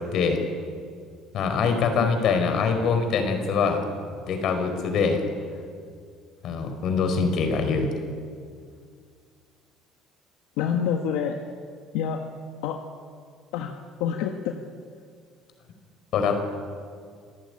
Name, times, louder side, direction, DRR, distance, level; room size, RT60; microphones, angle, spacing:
voice 1, 1.3-3.8 4.3-5.2 6.4-7.9 16.1-16.4, left 5 dB, 60° left, 6 dB, 4.9 m, -23 dB
voice 2, 10.6-11.4 11.9-12.2 12.6-12.8 13.5-13.7 14.0-14.6, left 8 dB, 90° left, 4 dB, 1.6 m, -27 dB
27.5 x 15.5 x 9.9 m, 2.1 s
cardioid pair, 105°, 0 cm